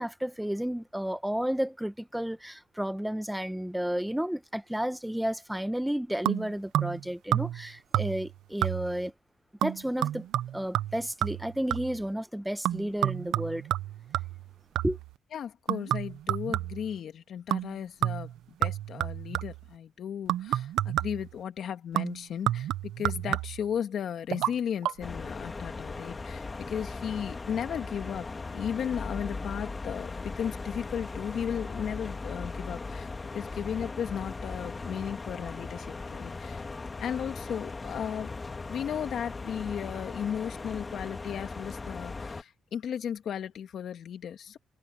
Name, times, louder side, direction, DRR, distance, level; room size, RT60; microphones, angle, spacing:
voice 1, 0.0-9.1 9.6-10.3 10.5-13.6 14.8-15.0, equal, 5° right, 1.2 m, -32 dB
sound 1, 6.3-7.0 7.3-7.7 7.9-8.3 8.6-9.0 9.6-12.0 12.6-15.1 15.7-17.0 17.5-17.7 18.0-19.7 20.3-21.3 22.0-23.7 24.3-24.5 24.8-24.9, right 13 dB, 85° right, 1.0 m, -30 dB
voice 2, 15.3-18.3 18.6-36.7 37.0-38.3 38.7-44.6, left 8 dB, 65° left, 2.4 m, -35 dB
sound 2, 25.0-42.4, left 3 dB, 25° left, 2.0 m, -38 dB
cardioid pair, 90°, 0 cm